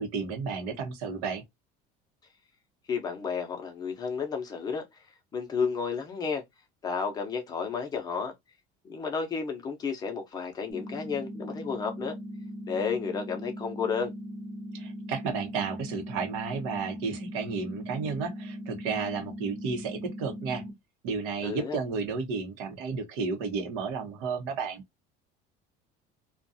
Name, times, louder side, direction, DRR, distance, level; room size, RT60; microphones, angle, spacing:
voice 1, 0.0-1.4 14.7-20.6 21.0-24.8, right 5 dB, 80° right, 0.9 m, -32 dB
voice 2, 2.9-5.1 5.3-6.4 6.8-8.3 8.9-12.2 12.7-14.1 21.4-21.8, left 5 dB, 20° left, 0.6 m, -32 dB
sound 1, 10.7-20.7, equal, 20° right, 1.0 m, -40 dB
2.5 x 2.3 x 2.6 m
cardioid pair, 165°, 19 cm